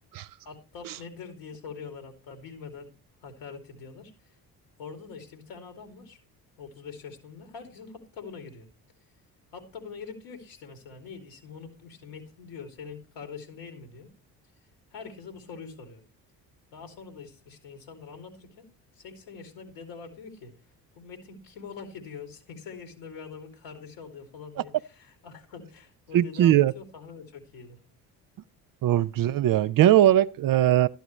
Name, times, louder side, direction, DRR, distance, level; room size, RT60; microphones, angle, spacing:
voice 1, 0.4-2.9 3.2-4.1 4.8-6.2 6.6-8.7 9.5-14.1 14.9-16.0 16.7-18.6 19.0-20.5 20.9-27.8, left 5 dB, 75° left, 2.7 m, -44 dB
voice 2, 26.1-26.7 28.8-30.9, right 12 dB, 50° right, 0.5 m, -20 dB
12.5 x 10.5 x 3.1 m
hypercardioid pair, 55°, 45 cm